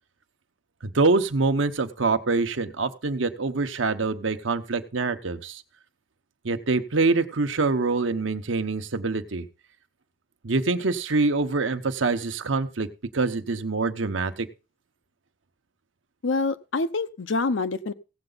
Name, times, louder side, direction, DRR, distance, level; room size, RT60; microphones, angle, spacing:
voice 1, 0.8-5.6 6.4-9.5 10.4-12.9 13.1-14.5, right 3 dB, 90° right, 8 dB, 0.9 m, -25 dB
voice 2, 16.2-17.9, left 3 dB, 80° left, 13 dB, 0.7 m, -26 dB
16.5 x 7.9 x 3.9 m, 0.32 s
head